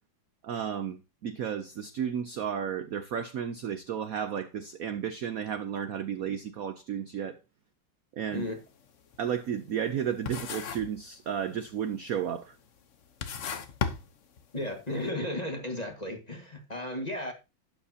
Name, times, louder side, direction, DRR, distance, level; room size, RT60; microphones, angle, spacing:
voice 1, 0.4-7.4 8.2-8.4 9.2-12.6, right 8 dB, 65° right, 0.9 m, -33 dB
sound 1, 8.3-8.6 9.0-10.0 10.3-11.0 11.3-11.8 12.5-12.6 13.0-14.7, left 6 dB, 50° left, 1.0 m, -35 dB
voice 2, 14.5-17.3, left 1 dB, 20° left, 1.5 m, -34 dB
12.0 x 9.2 x 2.8 m
omnidirectional pair, 2.2 m